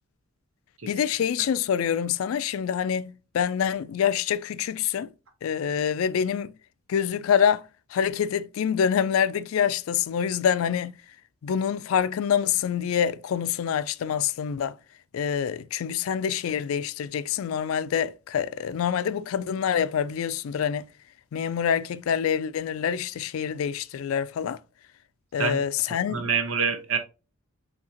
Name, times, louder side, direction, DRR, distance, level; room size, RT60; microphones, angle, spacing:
voice 1, 0.9-5.1 5.4-6.5 6.9-7.6 7.9-10.9 11.4-14.8 15.1-20.9 21.3-24.6 25.3-26.2, left 8 dB, 85° left, 0.3 m, -26 dB
voice 2, 26.1-27.0, right 6 dB, 90° right, 1.0 m, -25 dB
5.5 x 2.9 x 2.8 m
head